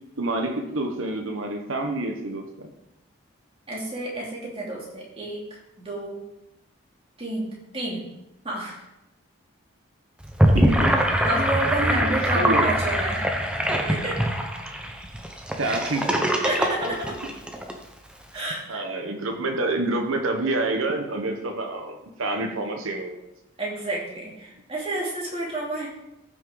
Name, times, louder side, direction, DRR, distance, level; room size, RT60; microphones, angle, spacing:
voice 1, 0.2-2.7 10.5-10.9 11.8-12.8 15.5-16.3 18.3-18.4 18.7-23.2, right 2 dB, 85° right, 3 dB, 1.2 m, -28 dB
voice 2, 3.7-5.4 5.8-6.2 7.2-8.0 8.4-8.8 11.2-13.2 13.9-14.2 16.4-17.1 18.3-18.8 23.6-25.9, right 1 dB, 30° right, -4 dB, 3.0 m, -30 dB
Gurgling / Sink (filling or washing), 10.2-17.7, equal, 5° right, 0.9 m, -23 dB
14.5 x 6.3 x 4.0 m, 0.89 s
head